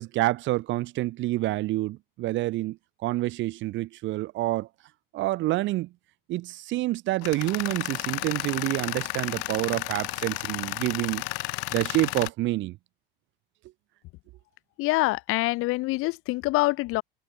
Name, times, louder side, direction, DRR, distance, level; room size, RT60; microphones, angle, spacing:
voice 1, 0.0-4.7 5.1-5.9 6.3-11.3 11.7-12.8, right 17 dB, 40° right, 0.7 m, -28 dB
Tools, 7.2-12.3, left 34 dB, 65° left, 3.1 m, -32 dB
voice 2, 14.8-17.0, left 21 dB, 50° left, 1.1 m, -25 dB
supercardioid pair, 110°, 29 cm